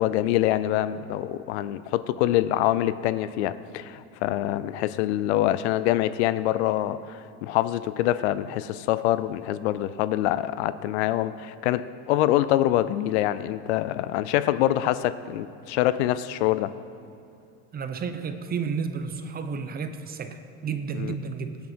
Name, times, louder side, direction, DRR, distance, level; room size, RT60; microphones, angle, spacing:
voice 1, 0.0-16.7 21.0-21.1, left 13 dB, 85° left, 14 dB, 0.6 m, -25 dB
voice 2, 17.7-21.6, right 6 dB, 30° right, 9 dB, 0.9 m, -32 dB
18.5 x 9.4 x 4.5 m, 2.7 s
supercardioid pair, 120°, 33 cm